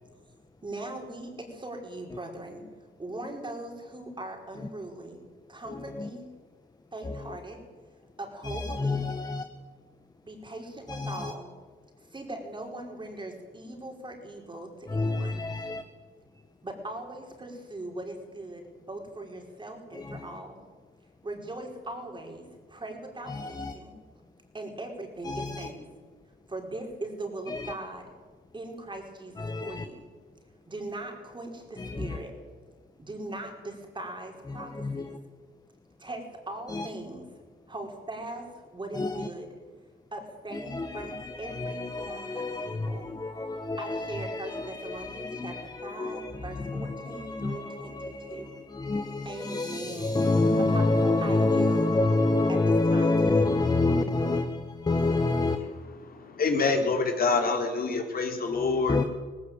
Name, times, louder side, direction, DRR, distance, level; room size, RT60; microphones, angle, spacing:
voice 1, 0.6-2.6 3.0-5.2 5.5-6.3 6.9-7.6 8.2-9.0 10.2-11.5 12.1-15.4 16.6-20.6 21.2-23.9 24.5-25.8 26.5-28.1 28.5-30.0 30.7-32.4 33.0-35.2 36.0-37.3 37.7-39.5 40.1-43.1 43.8-48.5 49.2-50.2 50.6-51.9 52.5-53.5, right 2 dB, 25° right, 5.0 m, -40 dB
voice 2, 5.7-6.1 7.0-7.2 8.4-9.4 10.9-11.3 14.9-15.8 19.9-20.2 23.3-23.7 25.2-25.7 27.5-27.7 29.4-29.9 31.8-32.2 34.5-35.1 36.7-36.9 38.9-39.3 40.5-55.6 58.5-59.0, left 2 dB, 20° left, 1.2 m, -28 dB
voice 3, 56.0-59.0, left 4 dB, 50° left, 3.5 m, -26 dB
18.0 x 16.5 x 8.8 m
cardioid pair, 90°, 20 cm